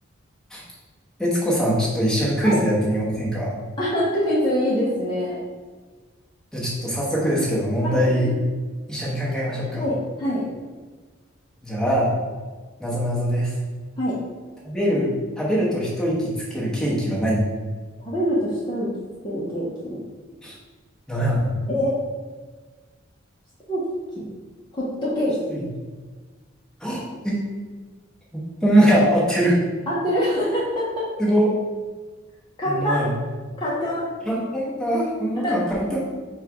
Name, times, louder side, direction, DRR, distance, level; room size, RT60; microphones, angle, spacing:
voice 1, 1.2-3.5 6.5-8.3 8.9-9.8 11.6-12.1 12.8-13.5 14.6-15.1 15.4-17.5 20.4-20.5 21.1-21.5 25.5-25.6 26.8-27.4 28.3-29.6 31.2-31.6 32.7-33.1 34.3-36.1, equal, 5° left, -7 dB, 1.1 m, -22 dB
voice 2, 3.8-5.4 7.8-8.1 9.7-10.4 14.0-14.2 18.0-18.9 19.2-20.0 21.7-21.9 23.7-23.9 24.2-24.3 24.7-25.4 29.9-31.1 32.6-33.0 33.6-34.1 35.3-35.6, equal, 25° left, -7 dB, 0.7 m, -24 dB
4.4 x 2.3 x 4.7 m, 1.4 s
head